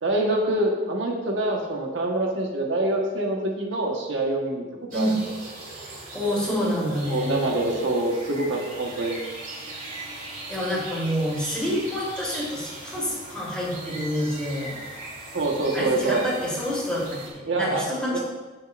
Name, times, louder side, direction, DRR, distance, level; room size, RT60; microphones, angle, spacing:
voice 1, 0.0-4.6 4.9-5.1 7.1-9.2 15.3-16.2 17.4-17.8 18.1-18.2, right 2 dB, 80° right, 0 dB, 1.3 m, -25 dB
sound 1, 4.9-17.3, right 2 dB, 45° right, 2.6 m, -39 dB
voice 2, 6.1-7.4 10.5-14.7 15.7-18.2, equal, 5° left, -7 dB, 3.2 m, -27 dB
15.5 x 6.5 x 2.5 m, 1.2 s
head